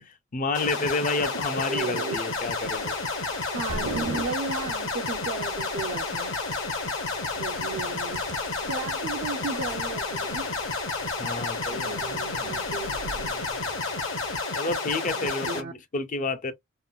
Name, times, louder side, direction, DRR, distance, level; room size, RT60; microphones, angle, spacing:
voice 1, 0.0-2.9 11.2-12.0 14.5-16.5, left 3 dB, 35° left, 0.5 m, -30 dB
sound 1, 0.5-15.6, left 3 dB, 60° left, 1.0 m, -31 dB
voice 2, 1.5-2.2 3.5-6.3 7.4-8.3 8.6-10.5 11.7-13.3 15.1-15.7, right 4 dB, 55° right, 0.4 m, -35 dB
sound 2, 2.3-13.8, right 2 dB, 80° right, 0.8 m, -42 dB
sound 3, 6.5-14.4, left 1 dB, 80° left, 1.1 m, -49 dB
3.6 x 2.1 x 2.2 m
head